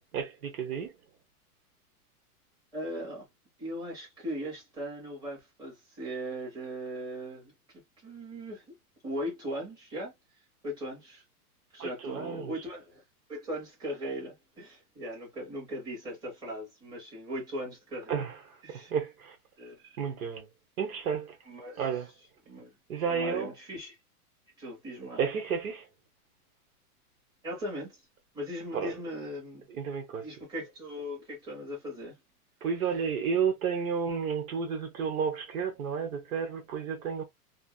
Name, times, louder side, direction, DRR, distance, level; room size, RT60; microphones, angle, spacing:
voice 1, 0.1-0.9 11.8-12.5 18.1-19.4 20.0-20.5 20.8-21.4 21.8-22.1 22.9-23.5 25.2-25.9 28.7-29.0 29.7-30.3 32.6-37.2, right 6 dB, 65° right, 1.0 m, -32 dB
voice 2, 2.7-3.3 3.6-8.6 9.0-10.1 10.6-11.2 11.7-13.0 13.3-18.2 18.6-18.9 19.6-20.0 21.5-21.8 22.5-22.8 23.1-24.0 24.6-25.2 27.4-28.0 28.3-29.7 30.2-32.2, equal, 10° right, 1.3 m, -39 dB
2.6 x 2.1 x 2.3 m
supercardioid pair, 165°, 46 cm